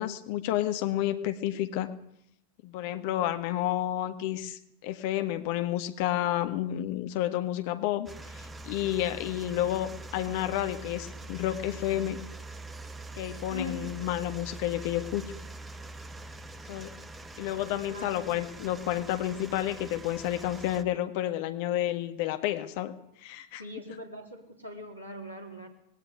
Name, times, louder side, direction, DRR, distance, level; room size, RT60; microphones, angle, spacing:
voice 1, 0.0-1.9 2.6-12.2 13.2-15.3 16.7-16.9 17.4-23.6, left 13 dB, 50° left, 10 dB, 1.6 m, -30 dB
sound 1, 8.1-20.8, right 2 dB, 15° right, 1.4 m, -44 dB
voice 2, 13.5-13.9 17.9-18.3 23.6-25.7, left 2 dB, 90° left, 4 dB, 4.2 m, -40 dB
20.0 x 17.5 x 9.4 m, 0.73 s
figure-of-eight pair, 90°, 0 cm